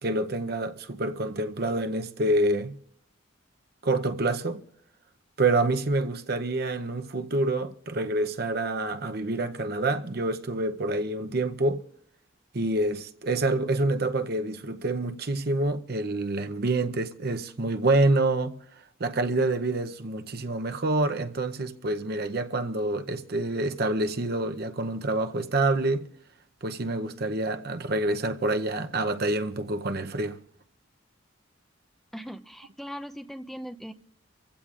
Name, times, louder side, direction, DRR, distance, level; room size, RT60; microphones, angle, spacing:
voice 1, 0.0-2.8 3.8-4.6 5.4-11.8 12.5-18.6 19.0-26.1 26.6-30.4, right 2 dB, 50° right, 0.7 m, -27 dB
voice 2, 32.1-33.9, equal, ahead, 0.6 m, -39 dB
26.0 x 15.5 x 2.5 m
head